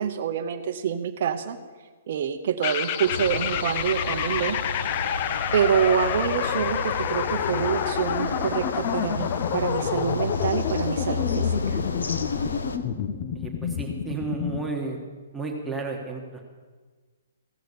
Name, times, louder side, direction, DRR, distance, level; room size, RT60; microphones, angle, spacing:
voice 1, 0.0-1.6 2.1-4.6 5.5-11.8, right 8 dB, 55° right, 5 dB, 0.7 m, -26 dB
sound 1, 2.6-14.7, left 9 dB, 40° left, 0.6 m, -29 dB
sound 2, 3.0-12.8, left 4 dB, 90° left, 1.0 m, -32 dB
voice 2, 13.3-15.0 15.3-16.4, right 3 dB, 5° right, -1 dB, 1.4 m, -32 dB
16.0 x 6.2 x 6.8 m, 1.4 s
hypercardioid pair, 145°, 0 cm